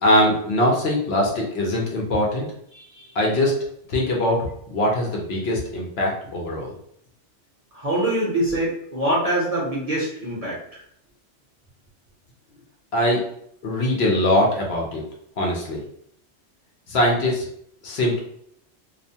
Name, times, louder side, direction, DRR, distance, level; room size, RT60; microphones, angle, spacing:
voice 1, 0.0-2.5 3.1-3.5 3.9-4.4 4.7-6.7 12.9-13.2 13.6-15.0 15.4-15.8 16.9-17.4 17.8-18.2, left 1 dB, 65° left, -1 dB, 0.8 m, -21 dB
voice 2, 2.7-3.1 7.7-10.8, right 1 dB, 40° right, -6 dB, 0.7 m, -24 dB
2.4 x 2.1 x 2.7 m, 0.70 s
omnidirectional pair, 1.2 m